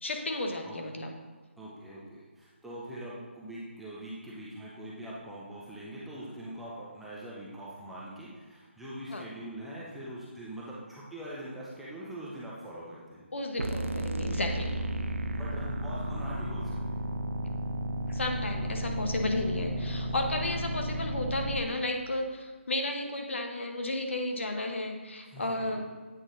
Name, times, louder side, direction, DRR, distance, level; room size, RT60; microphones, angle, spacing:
voice 1, 0.0-1.1 9.1-9.2 13.3-14.8 18.1-25.8, left 2 dB, 70° left, 3 dB, 1.0 m, -33 dB
voice 2, 1.6-13.3 14.8-17.0 25.3-25.8, right 1 dB, ahead, -8 dB, 0.4 m, -43 dB
sound 1, 13.6-21.6, right 1 dB, 85° right, 0.5 m, -33 dB
8.2 x 3.9 x 3.8 m, 1.3 s
figure-of-eight pair, 165°, 7 cm